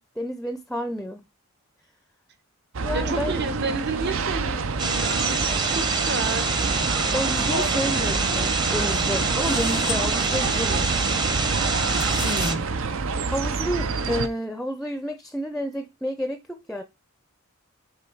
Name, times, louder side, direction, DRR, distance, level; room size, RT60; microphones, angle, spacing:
voice 1, 0.2-1.2 2.8-3.4 7.1-10.9 13.3-16.8, equal, ahead, 0.5 m, -30 dB
sound 1, 2.7-14.3, right 4 dB, 70° right, 0.7 m, -27 dB
voice 2, 2.9-6.6 12.2-12.7, right 3 dB, 55° right, 1.1 m, -31 dB
sound 2, 4.8-12.5, right 3 dB, 20° right, 0.8 m, -26 dB
sound 3, 9.4-10.0 11.6-12.5, left 15 dB, 70° left, 0.6 m, -36 dB
7.1 x 3.5 x 4.5 m
head